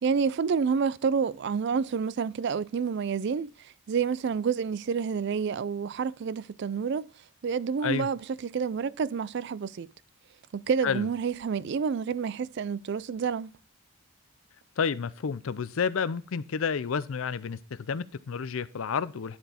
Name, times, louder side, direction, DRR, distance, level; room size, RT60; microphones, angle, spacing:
voice 1, 0.0-3.5 3.9-7.1 7.4-9.9 10.5-13.5, right 6 dB, 50° right, 0.3 m, -28 dB
voice 2, 14.8-19.4, left 6 dB, 65° left, 0.5 m, -30 dB
11.0 x 4.5 x 4.2 m
head